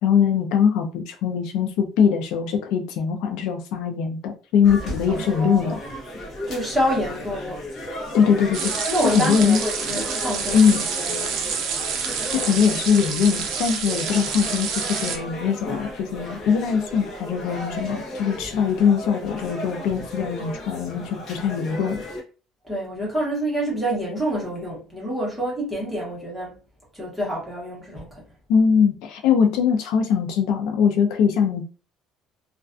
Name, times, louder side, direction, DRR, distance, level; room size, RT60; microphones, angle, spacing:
voice 1, 0.0-5.8 8.1-8.7 9.0-9.6 10.5-10.8 12.3-22.0 28.5-31.6, left 7 dB, 75° left, 0.4 m, -21 dB
sound 1, 4.6-22.2, equal, 35° left, 0.7 m, -35 dB
voice 2, 5.1-5.8 6.5-7.7 8.9-10.6 11.0-11.3 22.7-26.5 26.9-28.2, equal, ahead, 0.9 m, -27 dB
sound 2, 8.5-15.2, right 6 dB, 60° right, 0.4 m, -28 dB
2.3 x 2.2 x 2.4 m
cardioid pair, 175°, 0 cm